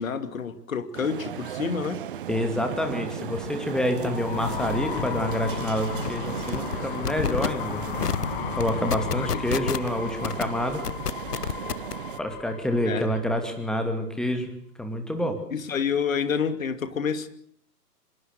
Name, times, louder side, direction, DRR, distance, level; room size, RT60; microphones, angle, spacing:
voice 1, 0.0-2.0 9.2-9.3 12.8-13.1 15.5-17.3, left 6 dB, 55° left, 2.7 m, -28 dB
sound 1, 0.9-12.2, right 10 dB, 35° right, 0.9 m, -36 dB
voice 2, 2.3-7.8 8.6-10.8 12.2-14.5 14.8-15.4, left 1 dB, ahead, 2.7 m, -27 dB
sound 2, 2.6-13.5, left 10 dB, 35° left, 2.1 m, -35 dB
sound 3, 5.4-5.5 5.8-6.1 6.5-6.8 7.0-7.5 8.0-8.3 8.6-9.9 10.2-10.4 10.8-11.9, left 6 dB, 75° left, 1.0 m, -28 dB
25.5 x 22.5 x 6.8 m
figure-of-eight pair, 125°, 48 cm